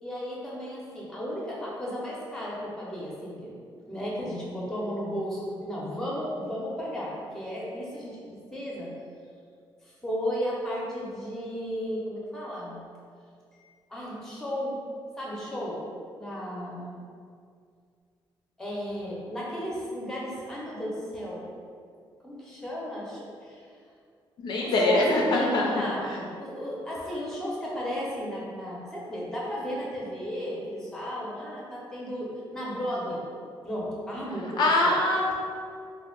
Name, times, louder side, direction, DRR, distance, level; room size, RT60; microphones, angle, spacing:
voice 1, 0.0-3.5 3.8-8.9 9.8-12.8 13.5-14.8 15.2-15.9 16.1-17.0 18.6-21.5 22.2-23.7 24.6-33.3 33.6-35.0, equal, 5° left, -5 dB, 0.6 m, -34 dB
voice 2, 24.4-25.8 34.6-35.3, left 2 dB, 60° left, -1 dB, 0.3 m, -23 dB
2.6 x 2.1 x 3.7 m, 2.2 s
wide cardioid pair, 170°, 9 cm